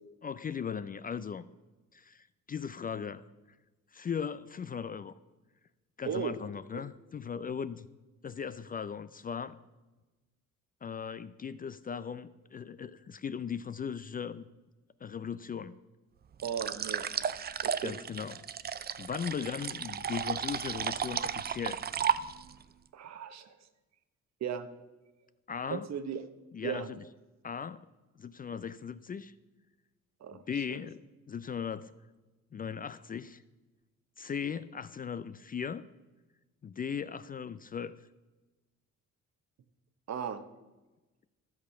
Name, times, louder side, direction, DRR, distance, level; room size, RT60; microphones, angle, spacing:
voice 1, 0.2-1.4 1.9-3.3 3.9-5.1 6.0-7.9 8.2-9.6 10.8-14.5 15.0-15.8 17.8-18.4 19.0-21.8 25.5-25.9 26.5-27.0 27.4-27.9 28.2-29.3 30.3-31.0 31.3-31.9 32.5-33.4 34.2-35.9 36.6-38.0, left 7 dB, 30° left, 14 dB, 0.4 m, -38 dB
sound 1, 16.4-22.6, right 8 dB, 35° right, 0.4 m, -34 dB
voice 2, 16.4-17.1 17.6-17.9 22.9-23.6 24.4-24.7 25.7-26.2 26.6-26.9 30.2-30.4 40.1-40.4, right 8 dB, 60° right, 11 dB, 1.0 m, -36 dB
13.0 x 6.3 x 5.7 m, 1.2 s
cardioid pair, 90°, 30 cm